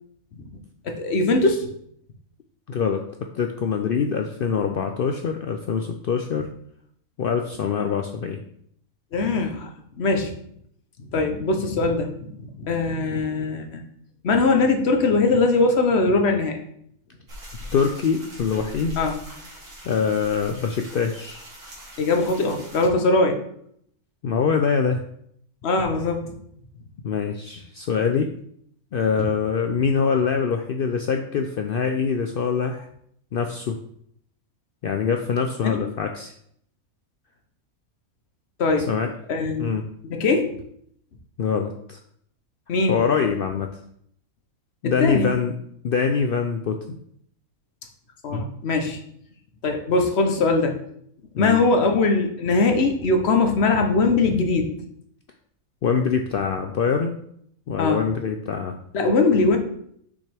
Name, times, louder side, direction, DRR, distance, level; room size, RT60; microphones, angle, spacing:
voice 1, 0.8-1.7 9.1-9.7 10.0-10.3 11.1-13.8 14.2-16.6 19.0-19.2 22.0-23.4 25.6-26.3 35.6-35.8 38.6-38.9 39.3-39.7 40.0-40.6 42.7-42.9 44.8-45.3 48.2-49.0 49.6-50.8 51.4-54.7 57.8-58.0 58.9-59.6, left 3 dB, 50° left, 5 dB, 1.1 m, -21 dB
voice 2, 2.7-6.5 7.2-8.4 17.7-19.0 19.8-21.5 24.2-25.0 27.0-28.3 28.9-32.9 33.3-33.8 34.8-36.3 38.9-39.1 39.6-39.8 41.4-42.0 42.9-43.7 44.8-45.6 45.8-47.0 51.3-51.6 55.8-57.1 57.7-58.7, left 6 dB, 90° left, 5 dB, 0.4 m, -24 dB
sound 1, 17.3-22.9, equal, 65° right, 2.6 m, -41 dB
6.3 x 5.9 x 3.4 m, 0.69 s
omnidirectional pair, 1.5 m